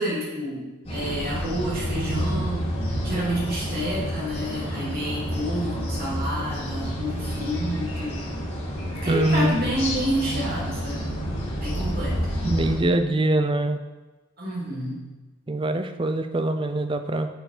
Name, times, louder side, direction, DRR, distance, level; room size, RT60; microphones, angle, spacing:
voice 1, 0.0-8.2 9.0-11.1 11.6-12.3 14.4-15.0, equal, 45° right, -6 dB, 3.2 m, -29 dB
sound 1, 0.8-12.8, equal, 25° left, 3.7 m, -29 dB
voice 2, 9.1-9.6 12.4-13.8 15.5-17.3, right 1 dB, 25° right, 8 dB, 0.5 m, -23 dB
9.2 x 6.8 x 5.0 m, 1.2 s
head